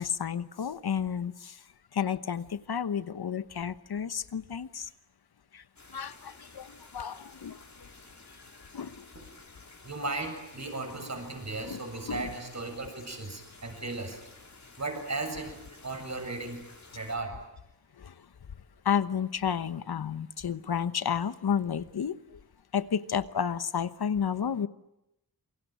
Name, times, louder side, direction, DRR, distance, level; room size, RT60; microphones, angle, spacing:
voice 1, 0.0-1.6 1.9-4.9 5.5-5.6 5.9-7.9 8.3-9.0 11.7-11.8 12.1-12.3 18.0-18.3 18.8-22.4 22.7-24.7, left 7 dB, 90° left, 13 dB, 1.1 m, -32 dB
sound 1, 5.8-17.2, left 3 dB, 50° left, 4.4 m, -53 dB
voice 2, 9.8-14.2 14.8-17.4, right 3 dB, 45° right, 5 dB, 7.6 m, -36 dB
27.5 x 23.0 x 9.2 m, 0.87 s
wide cardioid pair, 80°, 37 cm